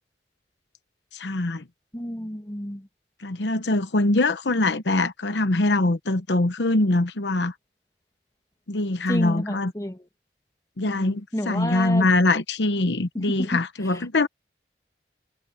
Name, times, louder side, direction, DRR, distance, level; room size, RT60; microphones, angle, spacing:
voice 1, 1.1-1.6 3.2-7.5 8.7-9.7 10.8-14.3, left 2 dB, 85° left, 1.0 m, -23 dB
voice 2, 1.9-2.9 9.1-10.1 10.8-12.1 13.1-14.1, equal, 20° left, 2.2 m, -31 dB
head